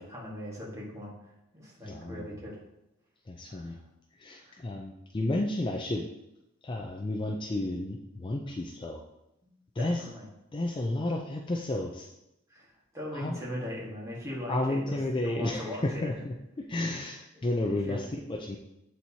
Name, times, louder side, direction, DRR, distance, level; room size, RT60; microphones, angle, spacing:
voice 1, 0.0-2.6 3.5-3.9 4.4-4.6 9.4-9.5 9.8-10.3 12.5-16.1 17.8-18.0, left 1 dB, 15° right, -4 dB, 1.5 m, -40 dB
voice 2, 1.8-2.3 3.3-3.8 4.2-6.0 6.6-9.0 9.8-10.0 10.5-12.1 13.1-13.4 14.5-18.6, left 1 dB, 25° left, 1 dB, 0.4 m, -32 dB
7.6 x 4.4 x 2.8 m, 0.86 s
head